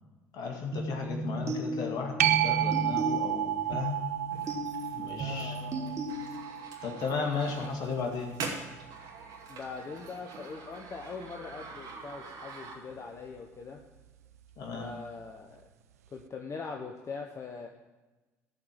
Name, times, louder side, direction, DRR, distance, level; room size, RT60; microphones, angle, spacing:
voice 1, 0.3-4.0 4.9-5.5 6.8-8.4 14.6-14.9, left 5 dB, 55° left, 2 dB, 2.2 m, -35 dB
sound 1, 0.7-6.7, right 1 dB, 35° right, 1.8 m, -36 dB
sound 2, 2.2-9.4 14.9-15.0, right 13 dB, 80° right, 0.4 m, -32 dB
sound 3, 4.3-13.1, right 4 dB, 55° right, 2.4 m, -45 dB
voice 2, 5.2-6.0 9.5-13.8 14.7-15.6 16.1-17.7, left 4 dB, 35° left, 2 dB, 1.1 m, -42 dB
14.5 x 4.9 x 7.5 m, 1.2 s
figure-of-eight pair, 60°, 8 cm